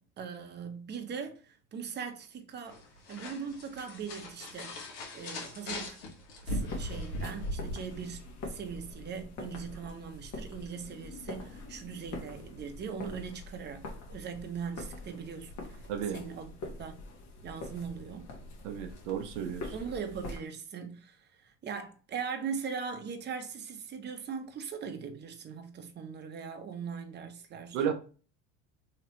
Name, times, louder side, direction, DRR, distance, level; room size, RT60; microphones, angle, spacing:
voice 1, 0.0-2.8 3.1-4.9 5.1-6.0 6.4-16.5 16.8-17.0 17.4-18.3 19.7-27.8, right 6 dB, 30° right, 0.7 m, -40 dB
sound 1, 2.6-7.7, left 1 dB, 70° left, 1.5 m, -39 dB
sound 2, 6.5-20.4, left 2 dB, 50° left, 1.2 m, -44 dB
voice 2, 18.6-19.7 27.7-27.9, right 8 dB, 80° right, 0.6 m, -33 dB
3.1 x 2.9 x 3.0 m
hypercardioid pair, 85°, 35 cm